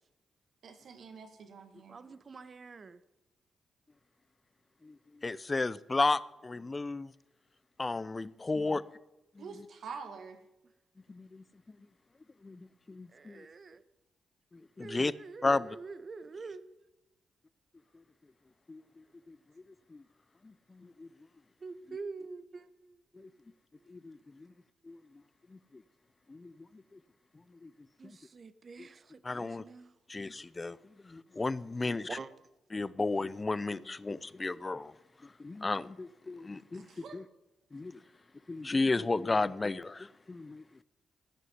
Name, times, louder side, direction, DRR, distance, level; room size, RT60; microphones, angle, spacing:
voice 1, 0.6-2.0 9.4-10.4 36.7-37.2, right 5 dB, 70° right, 2.1 m, -46 dB
voice 2, 1.9-3.0 8.6-8.7 13.1-13.8 14.8-16.6 21.6-23.4 23.7-23.9 28.0-29.9 32.1-32.3, right 4 dB, 50° right, 1.1 m, -46 dB
voice 3, 4.8-7.1 7.8-8.8 9.4-9.6 11.1-11.8 12.4-13.5 14.5-15.1 15.4-15.7 17.9-18.0 18.7-19.4 19.9-20.0 20.4-21.1 23.1-23.3 23.9-24.5 24.8-25.2 25.5-25.8 26.3-27.0 27.5-27.7 28.0-28.2 28.8-28.9 29.2-29.6 30.1-32.2 32.7-34.9 35.2-37.2 37.7-38.0 38.5-40.6, left 3 dB, 30° left, 0.7 m, -34 dB
16.0 x 6.3 x 9.6 m
supercardioid pair, 50°, 0 cm